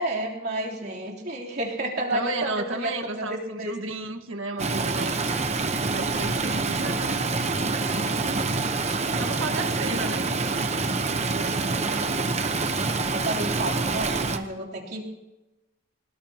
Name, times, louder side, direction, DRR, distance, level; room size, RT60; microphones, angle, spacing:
voice 1, 0.0-3.7 11.8-12.0 13.1-15.0, right 1 dB, 45° right, -4 dB, 3.5 m, -31 dB
voice 2, 2.1-5.2 5.9-8.5 9.2-10.3 11.0-12.3, right 2 dB, 65° right, 5 dB, 1.7 m, -34 dB
Stream, 4.6-14.4, right 3 dB, 30° right, 1.0 m, -26 dB
24.5 x 20.0 x 3.0 m, 1.0 s
head